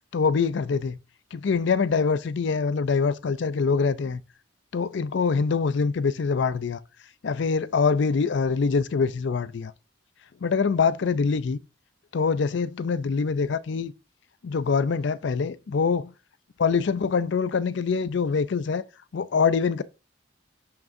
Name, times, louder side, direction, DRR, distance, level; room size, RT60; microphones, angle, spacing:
voice 1, 0.1-1.0 1.3-4.2 4.7-6.8 7.2-9.7 10.4-11.6 12.1-13.9 14.4-16.1 16.6-18.8 19.1-19.8, left 5 dB, 60° left, 0.4 m, -24 dB
10.5 x 3.7 x 2.6 m
head